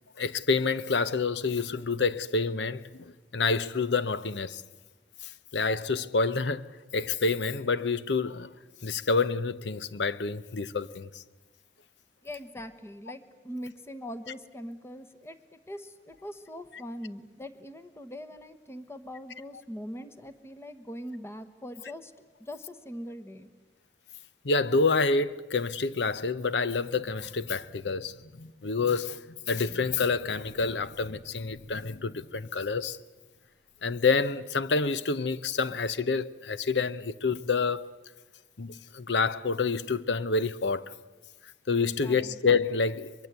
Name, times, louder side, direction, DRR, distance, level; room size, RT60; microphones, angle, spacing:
voice 1, 0.2-4.6 5.2-8.5 8.8-11.2 24.4-33.0 33.8-37.9 38.6-40.9 41.7-43.1, left 4 dB, 80° left, 0.8 m, -28 dB
voice 2, 12.2-23.5 41.9-42.4, equal, 15° left, 1.2 m, -42 dB
23.0 x 23.0 x 8.1 m
head